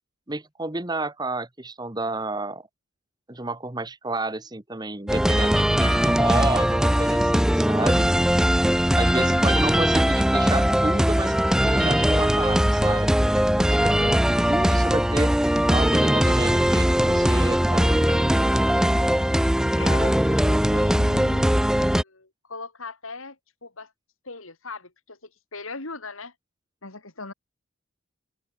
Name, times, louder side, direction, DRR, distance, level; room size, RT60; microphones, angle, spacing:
voice 1, 0.3-2.7 3.3-8.1 9.0-19.2, right 2 dB, 20° right, 1.1 m, -31 dB
sound 1, 5.1-22.0, equal, 5° right, 0.6 m, -20 dB
voice 2, 19.8-23.4 23.6-23.9 24.2-25.2 25.5-26.3 26.8-27.3, left 3 dB, 80° left, 3.8 m, -39 dB
head